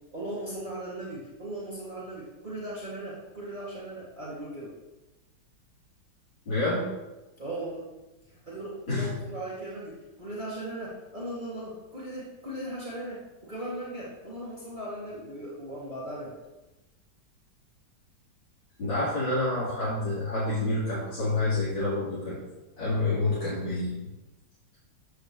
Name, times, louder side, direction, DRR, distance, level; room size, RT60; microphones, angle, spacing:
voice 1, 0.1-4.7 7.4-7.8 8.3-16.3, right 1 dB, 25° right, -7 dB, 2.9 m, -38 dB
voice 2, 6.5-6.8 8.9-9.1 18.8-22.4 22.8-23.9, left 2 dB, 80° left, -12 dB, 4.7 m, -28 dB
14.5 x 10.0 x 3.3 m, 1.0 s
omnidirectional pair, 2.0 m